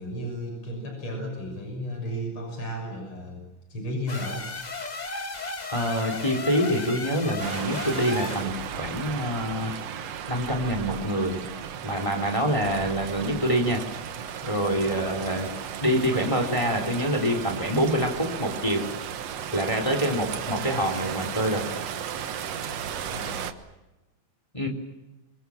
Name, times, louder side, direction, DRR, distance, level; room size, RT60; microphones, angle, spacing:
voice 1, 0.0-4.4 14.9-15.1 23.0-23.5, equal, 45° left, 2 dB, 7.2 m, -34 dB
sound 1, 4.1-8.5, left 3 dB, 75° left, 0.4 m, -34 dB
voice 2, 5.7-9.7 10.3-11.4 11.8-13.8 14.4-15.5 15.8-18.8 19.5-21.6 24.5-24.7, equal, 10° left, 4 dB, 3.5 m, -26 dB
sound 2, 7.4-23.5, right 8 dB, 60° right, 2.3 m, -35 dB
28.5 x 24.0 x 7.3 m, 1.0 s
omnidirectional pair, 3.5 m